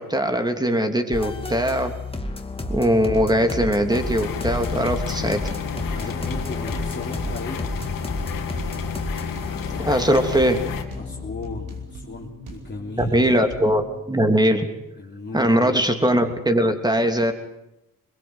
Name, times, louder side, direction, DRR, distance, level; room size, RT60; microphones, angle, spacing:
voice 1, 0.0-1.9 2.7-5.6 9.8-10.6 13.0-14.7 15.3-17.3, equal, 10° right, 6 dB, 3.2 m, -21 dB
sound 1, 1.1-11.9, left 2 dB, 15° left, 2.4 m, -32 dB
sound 2, 2.6-14.0, right 1 dB, 70° right, 5.4 m, -41 dB
sound 3, 3.9-10.8, left 7 dB, 80° left, 2.5 m, -31 dB
voice 2, 5.9-7.6 11.0-13.5 15.0-15.8, left 3 dB, 35° left, -3 dB, 3.4 m, -36 dB
22.0 x 21.5 x 8.1 m, 0.91 s
cardioid pair, 80°, 33 cm